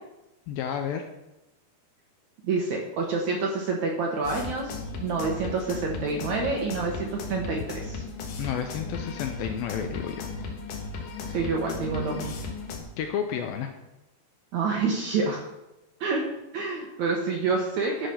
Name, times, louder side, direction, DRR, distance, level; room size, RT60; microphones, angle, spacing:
voice 1, 0.5-1.1 8.4-10.3 13.0-13.7, left 8 dB, 85° left, 6 dB, 2.2 m, -31 dB
voice 2, 2.4-8.0 11.3-12.4 14.5-15.4 16.0-16.2 16.5-18.1, right 4 dB, 70° right, -1 dB, 1.8 m, -28 dB
sound 1, 4.2-12.8, left 4 dB, 65° left, 2.5 m, -36 dB
12.5 x 4.9 x 5.8 m, 0.95 s
omnidirectional pair, 4.6 m